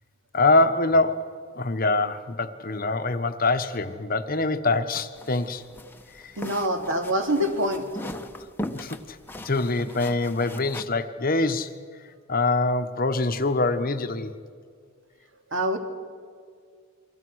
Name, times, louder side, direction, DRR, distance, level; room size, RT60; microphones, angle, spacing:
voice 1, 0.3-5.6 6.1-6.3 8.7-9.2 9.4-11.7 12.3-14.3, left 2 dB, 40° left, 9 dB, 1.1 m, -24 dB
sound 1, 5.2-10.8, left 1 dB, 10° left, 1.0 m, -39 dB
voice 2, 6.4-7.9 15.5-15.8, equal, 55° right, 5 dB, 2.9 m, -25 dB
29.0 x 23.5 x 6.3 m, 2.1 s
head